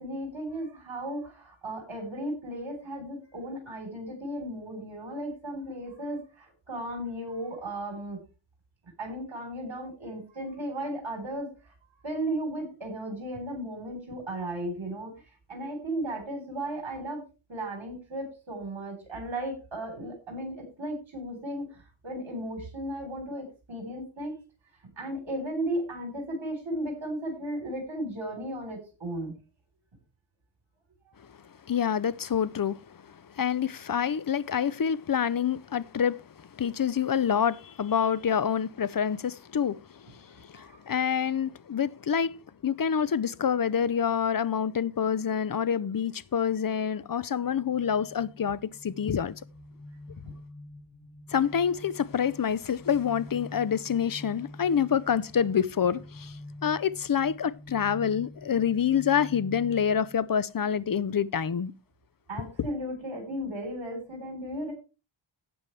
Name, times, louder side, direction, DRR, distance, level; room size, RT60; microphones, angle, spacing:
voice 1, 0.0-8.2 9.0-11.7 12.0-15.1 15.5-17.2 17.5-24.4 25.0-29.3 40.5-40.8 50.3-50.4 62.3-64.7, right 1 dB, 65° right, 4.0 m, -35 dB
voice 2, 31.7-32.8 33.4-36.2 36.6-39.8 40.4-42.3 42.6-49.3 51.3-56.3 56.6-61.7, left 8 dB, 45° left, 0.6 m, -27 dB
sound 1, 47.4-60.2, left 1 dB, 25° left, 2.3 m, -46 dB
12.5 x 8.8 x 3.3 m
wide cardioid pair, 65°, 49 cm